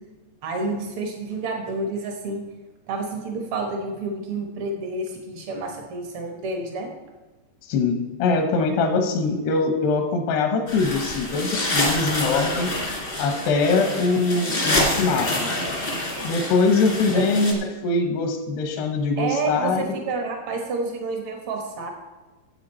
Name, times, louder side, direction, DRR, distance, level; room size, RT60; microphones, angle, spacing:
voice 1, 0.4-2.4 2.9-6.9 17.1-17.3 19.2-21.9, right 3 dB, 75° right, 3 dB, 1.2 m, -29 dB
voice 2, 7.7-12.7 13.2-15.5 16.2-19.9, left 3 dB, 85° left, 5 dB, 3.1 m, -22 dB
sound 1, 10.7-17.5, left 1 dB, 50° left, 0.6 m, -27 dB
12.0 x 7.8 x 4.3 m, 1.2 s
omnidirectional pair, 4.6 m